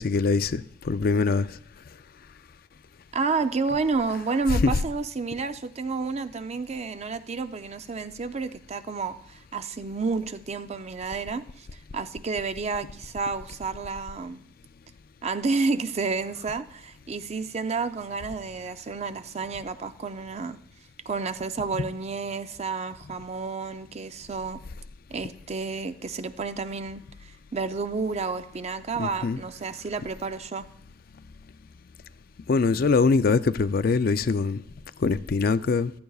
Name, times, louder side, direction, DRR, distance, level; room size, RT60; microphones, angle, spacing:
voice 1, 0.0-1.5 4.6-4.7 29.0-29.4 32.5-34.6 35.0-35.9, left 4 dB, 55° left, 0.4 m, -23 dB
voice 2, 3.1-11.7 11.9-14.4 15.2-20.6 21.1-24.6 25.1-30.7, right 4 dB, 35° right, 0.5 m, -30 dB
15.5 x 12.0 x 2.4 m
head